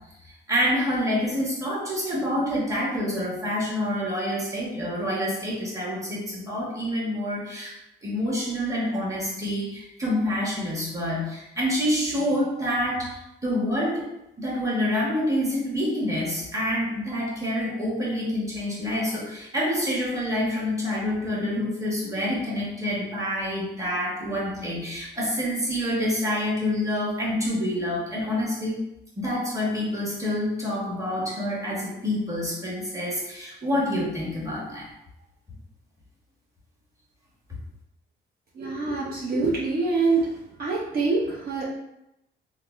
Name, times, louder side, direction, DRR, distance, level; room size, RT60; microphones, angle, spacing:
voice 1, 0.5-7.7 8.0-14.1 14.4-28.8 29.2-34.9 37.5-37.6, left 1 dB, 15° right, -5 dB, 1.1 m, -27 dB
voice 2, 38.5-40.3 40.6-41.7, right 3 dB, 50° right, -6 dB, 0.6 m, -25 dB
3.4 x 2.1 x 2.4 m, 0.84 s
cardioid pair, 90°, 20 cm